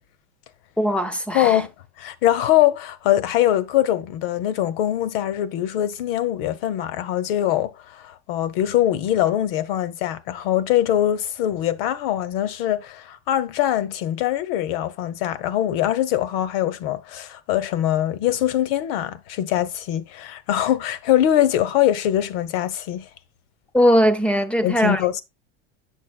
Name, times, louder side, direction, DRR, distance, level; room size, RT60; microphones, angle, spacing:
voice 1, 0.8-1.6 23.7-25.0, equal, 5° left, 0.5 m, -19 dB
voice 2, 1.3-1.7 2.0-23.1 24.6-25.2, left 12 dB, 65° left, 1.0 m, -22 dB
9.5 x 6.4 x 2.3 m
supercardioid pair, 165°, 32 cm